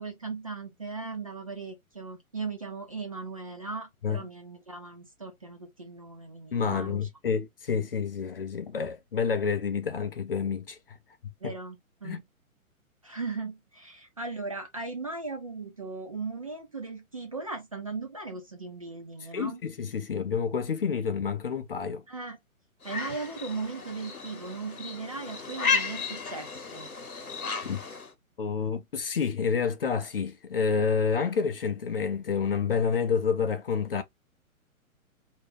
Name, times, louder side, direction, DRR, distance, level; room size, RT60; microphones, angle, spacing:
voice 1, 0.0-7.0 11.4-12.2 13.0-19.6 22.1-22.4 22.8-27.0, right 4 dB, 25° right, 0.4 m, -38 dB
voice 2, 6.5-11.0 11.4-11.5 12.0-12.2 19.3-22.0 27.6-27.8 28.4-34.0, left 6 dB, 45° left, 0.4 m, -29 dB
sound 1, 22.8-28.1, left 5 dB, 85° left, 0.9 m, -33 dB
2.4 x 2.1 x 3.2 m
figure-of-eight pair, 125°, 43 cm